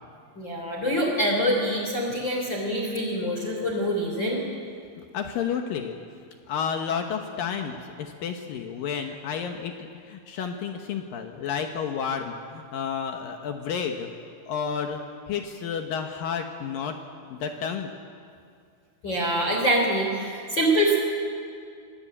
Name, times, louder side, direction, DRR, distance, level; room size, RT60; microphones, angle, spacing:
voice 1, 0.3-4.4 19.0-21.0, equal, 25° left, 0 dB, 3.1 m, -25 dB
voice 2, 5.0-14.1 14.5-15.0 15.3-17.0 17.3-17.9, left 7 dB, 80° left, 4 dB, 2.0 m, -31 dB
26.0 x 19.5 x 8.7 m, 2.3 s
omnidirectional pair, 5.9 m